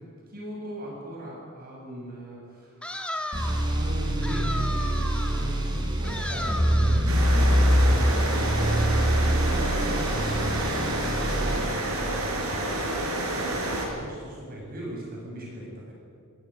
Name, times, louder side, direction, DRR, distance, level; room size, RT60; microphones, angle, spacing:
voice 1, 0.0-3.0 3.6-5.0 5.4-13.7 14.0-15.9, equal, 45° right, -3 dB, 8.0 m, -41 dB
sound 1, 2.8-3.7 4.2-5.5 6.0-7.1, left 1 dB, 5° left, 2.0 m, -35 dB
sound 2, 3.3-11.6, equal, 20° right, 4.7 m, -24 dB
sound 3, 7.1-13.9, right 1 dB, 85° right, 6.6 m, -29 dB
26.0 x 17.5 x 9.4 m, 2.4 s
head